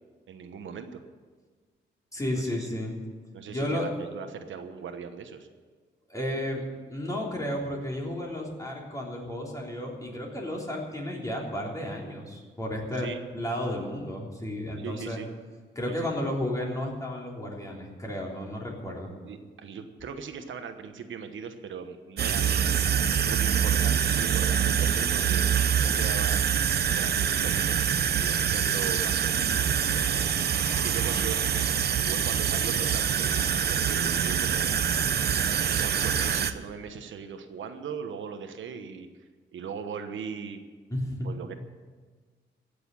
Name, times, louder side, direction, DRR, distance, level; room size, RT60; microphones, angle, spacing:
voice 1, 0.3-1.0 2.3-2.8 3.3-5.5 12.9-13.2 14.8-15.3 15.9-16.2 19.2-22.9 23.2-25.4 25.8-27.8 28.1-30.2 30.7-34.8 35.8-39.1 39.5-40.6 41.2-41.6, right 6 dB, 80° right, 7 dB, 1.2 m, -39 dB
voice 2, 2.1-3.0 3.5-3.9 6.1-6.6 6.9-15.2 15.8-19.1 40.9-41.3, left 1 dB, 15° left, -2 dB, 3.5 m, -33 dB
sound 1, 22.2-36.5, right 8 dB, 55° right, 0.7 m, -25 dB
15.5 x 6.9 x 9.9 m, 1.5 s
cardioid pair, 115°, 20 cm